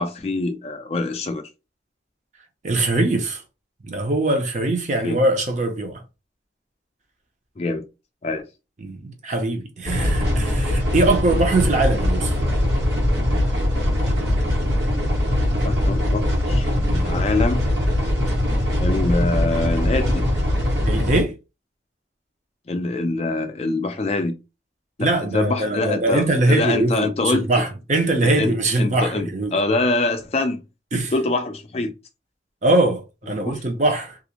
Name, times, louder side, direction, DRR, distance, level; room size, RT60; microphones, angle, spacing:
voice 1, 0.0-1.5 5.0-5.2 7.6-7.8 8.2-8.4 15.6-17.7 18.8-20.2 22.7-24.4 25.0-27.5 28.2-30.6 31.1-31.9 33.3-33.6, left 2 dB, 35° left, 0.3 m, -24 dB
voice 2, 2.6-3.4 3.8-6.0 8.8-12.3 20.8-21.3 25.0-29.5 30.9-31.1 32.6-34.2, right 2 dB, 40° right, 0.6 m, -22 dB
sound 1, 9.9-21.2, left 1 dB, 80° right, 1.2 m, -21 dB
2.4 x 2.1 x 2.8 m
head